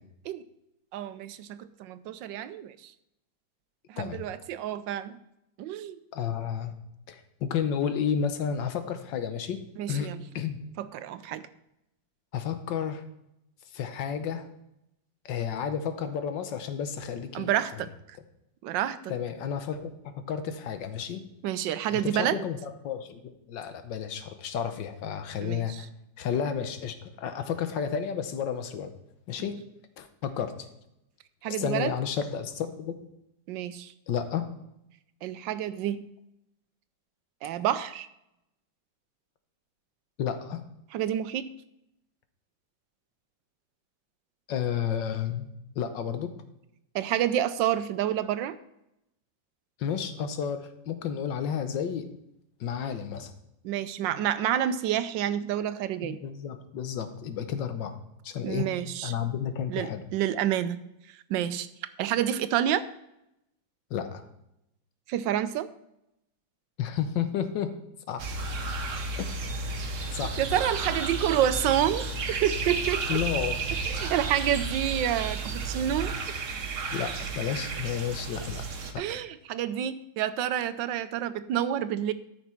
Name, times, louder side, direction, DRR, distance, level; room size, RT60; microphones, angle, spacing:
voice 1, 0.9-2.9 3.9-5.1 5.6-6.0 9.8-10.2 10.8-11.4 17.3-18.2 18.6-19.0 21.4-22.4 25.4-25.8 31.4-31.9 33.5-33.9 35.2-36.0 37.4-38.1 40.9-41.5 46.9-48.6 53.6-56.2 58.4-59.1 59.7-60.8 61.3-61.7 62.0-62.8 65.1-65.7 70.4-73.1 73.8-76.2 79.0-82.1, right 11 dB, 80° right, 13 dB, 1.3 m, -28 dB
voice 2, 6.1-6.8 7.1-9.6 9.9-10.6 12.3-13.0 13.7-14.5 15.2-17.5 19.1-21.2 21.9-25.9 26.2-28.9 29.3-29.6 30.0-30.5 31.5-32.9 34.1-34.5 40.2-40.6 44.5-45.5 45.7-46.3 49.8-52.1 52.6-53.3 56.0-58.0 58.2-58.7 59.0-60.0 63.9-64.2 66.8-67.7 68.1-68.3 69.2-69.3 70.1-70.4 73.1-73.6 76.9-78.6 78.9-79.0, left 8 dB, 80° left, 9 dB, 1.5 m, -31 dB
sound 1, 68.2-78.9, right 3 dB, 50° right, 1.1 m, -32 dB
13.5 x 6.1 x 4.4 m, 0.84 s
omnidirectional pair, 2.0 m